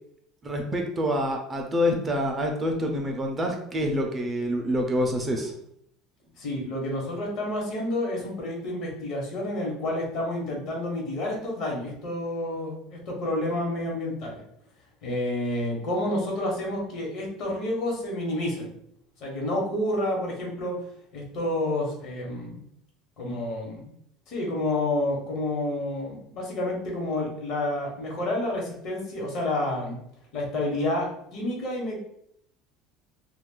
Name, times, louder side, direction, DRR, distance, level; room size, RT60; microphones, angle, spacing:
voice 1, 0.4-5.6, equal, 20° right, 2 dB, 0.5 m, -27 dB
voice 2, 6.4-14.4 15.0-18.7 19.2-20.8 21.1-22.6 23.2-23.9 24.3-30.0 30.3-32.0, left 1 dB, 55° left, -1 dB, 1.1 m, -29 dB
2.3 x 2.3 x 3.7 m, 0.72 s
cardioid pair, 130°, 0 cm